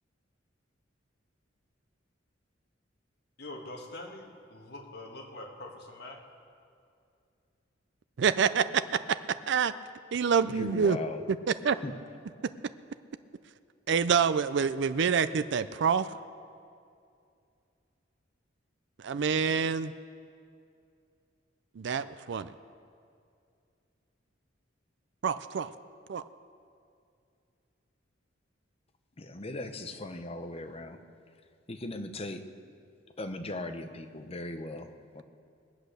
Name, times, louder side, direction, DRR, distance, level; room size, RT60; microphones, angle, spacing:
voice 1, 3.4-6.2, left 2 dB, 60° left, 1 dB, 1.8 m, -44 dB
voice 2, 8.2-8.8 9.5-9.7 10.1-11.0 11.5-11.8 13.9-16.1 19.0-19.9 21.8-22.5 25.2-25.7 26.1-26.2, right 6 dB, 65° right, 13 dB, 0.4 m, -26 dB
voice 3, 10.4-11.2 11.8-11.9 29.2-31.0 31.7-32.4 33.2-34.9 35.1-35.2, left 2 dB, 30° left, 7 dB, 0.8 m, -38 dB
20.0 x 8.3 x 6.6 m, 2.4 s
head